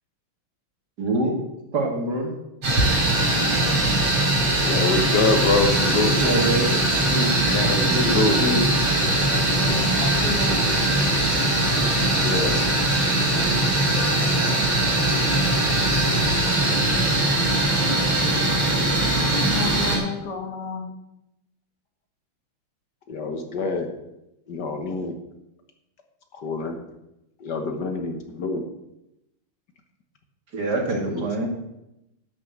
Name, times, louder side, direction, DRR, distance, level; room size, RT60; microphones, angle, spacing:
voice 1, 1.0-1.3 1.7-2.3 6.2-7.3 7.8-8.6 30.5-31.5, right 1 dB, 50° right, 1 dB, 2.5 m, -25 dB
sound 1, 2.6-20.0, right 1 dB, 75° right, 4.4 m, -21 dB
voice 2, 4.6-6.2 7.5-8.4 12.0-12.6 23.1-23.9 24.5-25.1 26.4-26.7 27.4-28.6 31.1-31.5, left 3 dB, 55° left, 5 dB, 1.6 m, -25 dB
voice 3, 9.2-10.7 19.5-20.9, left 5 dB, 85° left, 1 dB, 3.0 m, -32 dB
11.5 x 6.3 x 7.2 m, 0.87 s
omnidirectional pair, 2.4 m